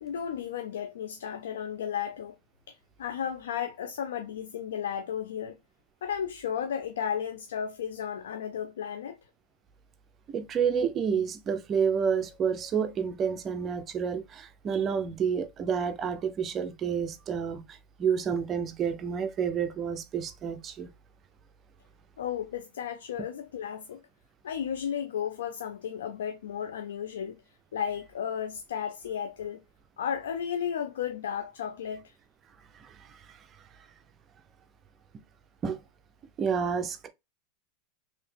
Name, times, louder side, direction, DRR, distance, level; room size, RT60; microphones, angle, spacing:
voice 1, 0.0-2.3 2.7-5.6 6.0-9.2 22.2-24.0 24.4-27.4 27.7-29.6 30.0-32.1, left 8 dB, 90° left, 0.4 m, -34 dB
voice 2, 10.3-20.9 32.8-33.4 35.6-35.8 36.4-37.1, right 7 dB, 30° right, 0.5 m, -29 dB
3.2 x 2.8 x 3.2 m
supercardioid pair, 125°, 0 cm